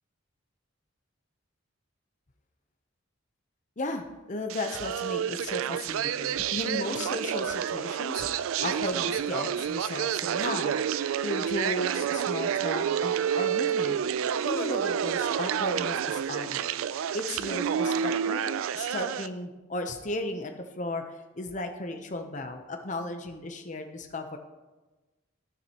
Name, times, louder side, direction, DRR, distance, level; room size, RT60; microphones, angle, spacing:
voice 1, 3.8-10.7 11.2-14.0 14.4-16.7 17.1-18.4 18.7-24.4, left 2 dB, 40° left, 6 dB, 0.7 m, -35 dB
sound 1, 4.5-19.3, right 8 dB, 85° right, 0.3 m, -29 dB
15.0 x 6.5 x 2.9 m, 1.2 s
head